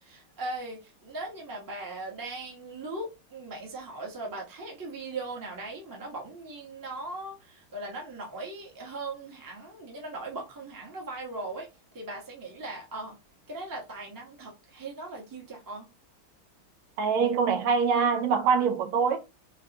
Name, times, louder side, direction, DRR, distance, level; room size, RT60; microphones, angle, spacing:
voice 1, 0.0-11.7 11.9-13.1 13.5-15.9, right 2 dB, 20° right, 0.5 m, -39 dB
voice 2, 17.0-19.2, right 6 dB, 85° right, 1.7 m, -24 dB
4.7 x 2.1 x 2.8 m
omnidirectional pair, 2.3 m